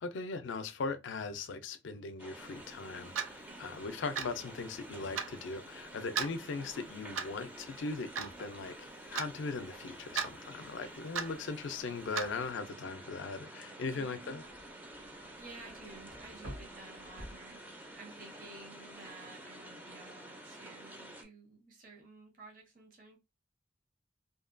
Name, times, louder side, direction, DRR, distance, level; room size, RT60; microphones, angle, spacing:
voice 1, 0.0-14.4, left 4 dB, 65° left, 0.4 m, -39 dB
sound 1, 2.2-21.2, right 1 dB, 10° right, 0.4 m, -50 dB
Clock, 3.2-3.4 4.2-4.4 5.2-5.3 6.2-6.3 7.2-7.4 8.2-8.3 9.2-9.3 10.2-10.3 11.2-11.4 12.2-12.3, right 7 dB, 85° right, 0.4 m, -34 dB
voice 2, 13.8-14.5 15.4-23.2, right 3 dB, 45° right, 0.7 m, -53 dB
sound 2, 14.0-18.2 18.5-19.0, equal, 70° right, 1.0 m, -51 dB
2.7 x 2.2 x 2.5 m
head